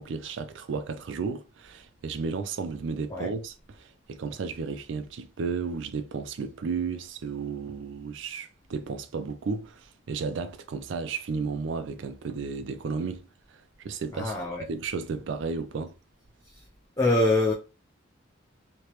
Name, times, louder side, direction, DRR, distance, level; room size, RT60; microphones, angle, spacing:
voice 1, 0.0-14.3 14.7-15.9, right 5 dB, 65° right, 0.4 m, -33 dB
voice 2, 14.1-14.7 16.4-16.6 17.0-17.5, left 2 dB, 15° left, 0.5 m, -25 dB
3.2 x 2.9 x 2.9 m
head